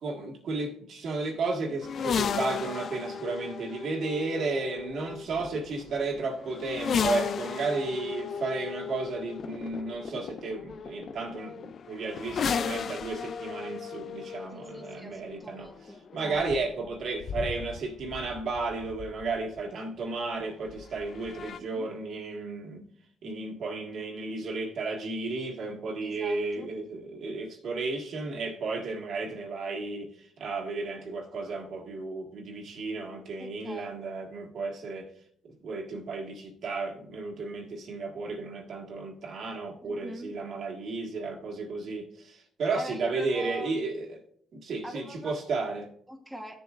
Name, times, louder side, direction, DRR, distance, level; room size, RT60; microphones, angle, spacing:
voice 1, 0.0-15.7 16.1-22.8 23.2-35.1 35.6-44.1 44.5-45.9, right 3 dB, 65° right, 1.7 m, -33 dB
sound 1, 1.8-19.6 20.7-21.6, left 6 dB, 55° left, 0.4 m, -35 dB
voice 2, 14.5-16.4 21.4-21.9 26.0-26.7 33.4-34.0 39.8-40.3 42.7-43.8 44.8-45.4 46.1-46.6, right 1 dB, ahead, 1.3 m, -43 dB
13.5 x 6.9 x 2.5 m
cardioid pair, 90°, 0 cm